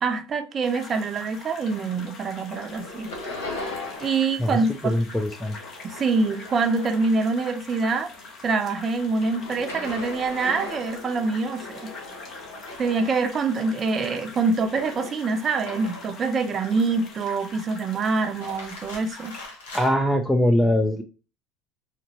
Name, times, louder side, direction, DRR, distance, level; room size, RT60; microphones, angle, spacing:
voice 1, 0.0-3.1 4.0-4.9 5.8-8.1 8.4-11.9 12.8-19.3, right 4 dB, 40° right, 0.6 m, -25 dB
sound 1, 0.6-19.5, left 3 dB, 50° left, 1.1 m, -44 dB
sound 2, 1.3-2.1 2.3-4.4 4.6-7.5 7.9-16.2 16.7-17.4 18.2-19.9, left 2 dB, 85° left, 1.1 m, -40 dB
voice 2, 4.8-5.6 19.7-21.0, left 1 dB, 10° left, 0.4 m, -22 dB
4.1 x 2.2 x 2.8 m
hypercardioid pair, 80°, 0 cm